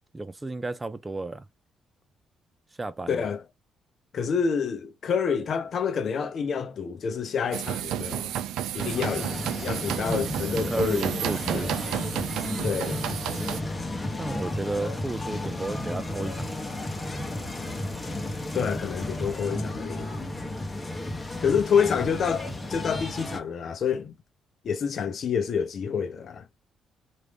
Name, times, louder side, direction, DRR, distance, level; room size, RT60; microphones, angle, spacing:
voice 1, 0.1-1.5 2.8-3.3 10.7-11.7 14.2-16.5, right 2 dB, 20° right, 0.4 m, -33 dB
voice 2, 3.1-3.4 4.1-8.3 8.7-12.0 12.6-13.0 18.5-20.1 21.4-24.1 24.6-26.5, left 6 dB, 55° left, 0.7 m, -28 dB
sound 1, 7.5-13.6, right 11 dB, 90° right, 0.3 m, -31 dB
sound 2, 8.8-23.4, left 1 dB, 15° left, 0.9 m, -33 dB
sound 3, 12.7-19.6, left 2 dB, 35° left, 1.2 m, -41 dB
3.0 x 2.6 x 3.4 m
cardioid pair, 90°, 0 cm